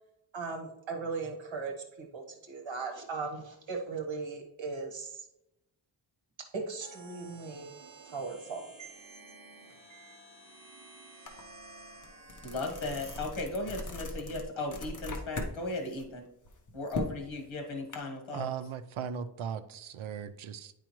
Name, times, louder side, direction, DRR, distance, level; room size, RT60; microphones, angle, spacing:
voice 1, 0.3-5.3 6.5-7.7 8.1-9.6 9.9-10.2, right 4 dB, 70° right, 3 dB, 1.4 m, -38 dB
sound 1, 6.8-13.2, right 3 dB, 45° right, 1.2 m, -52 dB
sound 2, 11.3-11.4 11.8-15.5 15.9-18.0, left 2 dB, 40° left, 0.9 m, -39 dB
voice 2, 12.4-16.2 16.7-18.5, left 2 dB, 80° left, 3 dB, 1.4 m, -36 dB
voice 3, 18.3-20.7, right 7 dB, 90° right, 11 dB, 0.6 m, -38 dB
9.0 x 4.8 x 3.0 m, 0.84 s
wide cardioid pair, 175°, 47 cm